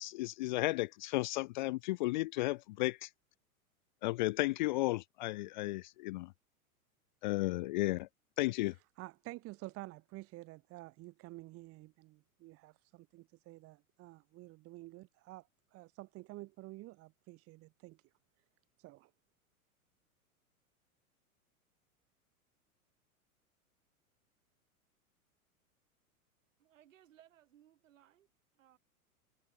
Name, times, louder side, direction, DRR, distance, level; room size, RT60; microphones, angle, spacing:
voice 1, 0.0-3.1 4.0-6.3 7.2-8.1 8.4-8.7, left 20 dB, 35° left, 0.5 m, -34 dB
voice 2, 9.0-18.0 18.8-19.1, right 20 dB, 30° right, 1.9 m, -50 dB
voice 3, 26.6-28.3 28.5-28.8, right 11 dB, 60° right, 7.4 m, -64 dB
figure-of-eight pair, 95°, 43 cm